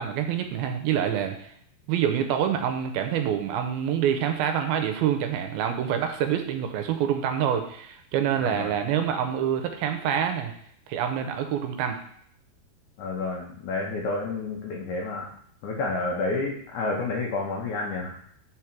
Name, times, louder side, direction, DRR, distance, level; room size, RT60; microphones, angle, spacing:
voice 1, 0.0-1.5 1.9-10.5 10.9-12.0, right 9 dB, 80° right, 6 dB, 2.3 m, -26 dB
voice 2, 8.4-8.7 13.0-15.3 15.6-18.1, left 3 dB, 85° left, -1 dB, 1.7 m, -30 dB
5.2 x 4.8 x 5.8 m, 0.66 s
omnidirectional pair, 4.6 m